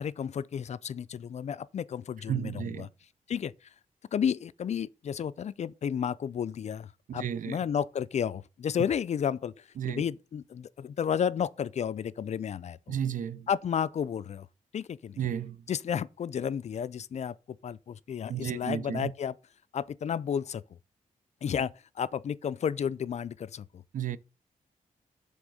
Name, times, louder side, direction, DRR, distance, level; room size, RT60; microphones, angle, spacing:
voice 1, 0.0-2.9 3.3-3.7 4.1-12.9 13.5-14.5 14.7-15.2 15.7-17.3 17.6-19.3 19.7-20.6 21.4-23.8, left 8 dB, 55° left, 0.4 m, -32 dB
voice 2, 2.3-2.9 7.1-7.6 9.8-10.0 12.9-13.5 15.2-15.6 18.3-19.1 23.9-24.2, right 9 dB, 75° right, 0.5 m, -33 dB
7.7 x 3.5 x 6.3 m
wide cardioid pair, 120°, 14 cm